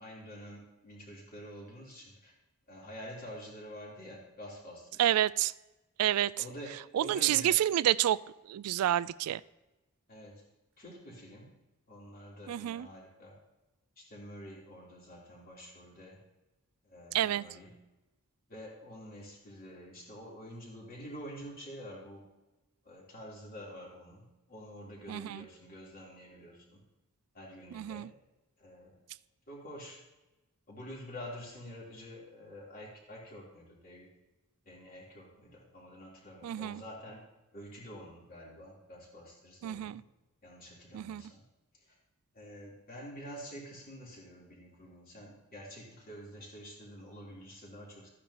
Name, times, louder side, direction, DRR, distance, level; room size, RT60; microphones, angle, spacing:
voice 1, 0.0-2.3 2.7-5.1 6.4-7.6 10.1-10.4 10.8-11.5 11.9-13.3 14.0-16.2 16.8-17.7 18.5-22.2 22.8-26.8 27.3-28.1 28.6-29.0 29.5-30.0 30.7-34.1 34.6-37.2 37.5-40.0 40.4-41.4 41.7-41.9 42.3-48.1, equal, 40° left, -4 dB, 3.5 m, -48 dB
voice 2, 5.0-5.5 6.0-6.4 6.9-8.2 8.4-9.4 12.5-12.9 17.1-17.4 25.1-25.5 27.7-28.1 36.4-36.8 39.6-40.0 40.9-41.2, right 12 dB, 80° right, 17 dB, 0.3 m, -29 dB
13.5 x 10.0 x 2.9 m, 1.0 s
head